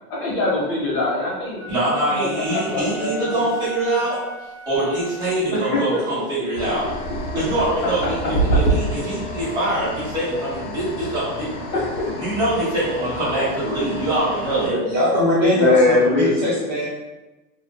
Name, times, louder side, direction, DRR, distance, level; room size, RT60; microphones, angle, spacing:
voice 1, 0.2-1.6 2.1-3.4 5.5-5.8 6.6-6.9 8.5-8.6 11.7-11.9 14.6-14.8 15.5-16.5, left 2 dB, 35° left, -6 dB, 1.0 m, -22 dB
Wind instrument woodwind instrument, 1.5-5.9, right 1 dB, 65° right, 0.9 m, -38 dB
voice 2, 1.7-4.2 4.7-6.8 7.3-11.6 12.2-14.8, right 1 dB, 10° right, -12 dB, 1.2 m, -24 dB
sound 1, 6.6-14.7, right 1 dB, 90° left, 0.8 m, -27 dB
voice 3, 14.9-16.9, left 1 dB, 30° right, -8 dB, 0.5 m, -20 dB
2.5 x 2.5 x 2.2 m, 1.1 s
supercardioid pair, 160°, 48 cm